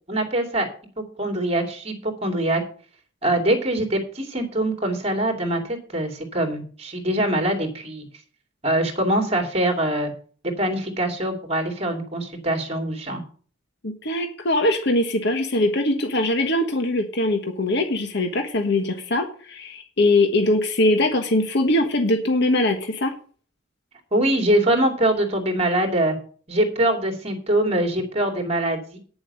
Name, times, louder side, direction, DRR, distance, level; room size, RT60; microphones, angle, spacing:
voice 1, 0.1-0.7 1.2-2.6 3.2-8.0 8.6-10.1 10.4-13.2 24.1-26.2 26.5-29.0, right 1 dB, 30° right, 4 dB, 2.6 m, -23 dB
voice 2, 13.8-23.1, left 1 dB, 60° left, 5 dB, 1.5 m, -22 dB
9.7 x 7.1 x 6.6 m, 0.42 s
head